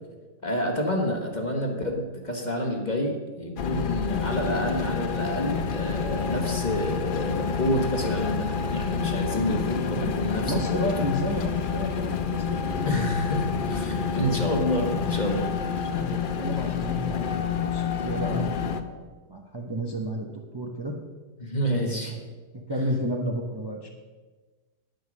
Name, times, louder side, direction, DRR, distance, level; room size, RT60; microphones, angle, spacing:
voice 1, 0.4-10.9 12.9-15.5 21.4-22.2 22.7-22.9, equal, 30° left, 1 dB, 1.5 m, -28 dB
sound 1, 3.6-18.8, left 6 dB, 55° left, 0.5 m, -28 dB
voice 2, 9.8-13.0 14.1-14.4 15.8-19.0 19.3-20.9 21.7-22.2 22.5-23.9, right 1 dB, 20° right, 1 dB, 0.8 m, -32 dB
9.4 x 9.2 x 6.2 m, 1.3 s
omnidirectional pair, 1.7 m